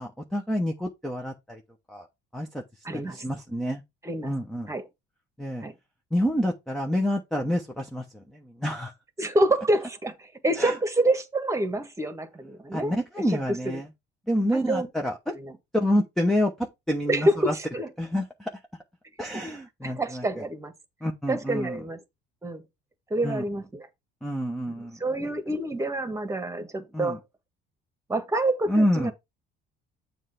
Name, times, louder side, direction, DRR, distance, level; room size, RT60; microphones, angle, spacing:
voice 1, 0.0-1.6 1.9-2.1 2.3-2.6 2.9-3.8 4.2-4.7 5.4-5.6 6.1-8.9 9.2-9.3 10.6-10.8 12.7-13.9 14.3-15.3 15.7-17.5 18.0-18.6 19.2-20.4 21.0-21.8 23.2-23.4 24.2-25.3 26.9-27.2 28.7-29.1, equal, ahead, 0.9 m, -28 dB
voice 2, 2.8-3.2 4.0-4.3 4.7-4.8 5.6-5.7 9.2-12.9 13.3-13.4 13.6-13.8 14.5-14.9 15.3-15.5 17.1-17.9 19.8-20.7 21.3-22.0 22.4-22.6 23.1-23.9 24.7-27.2 28.1-29.1, right 1 dB, 15° right, 1.5 m, -27 dB
7.3 x 3.2 x 5.7 m
cardioid pair, 125°, 21 cm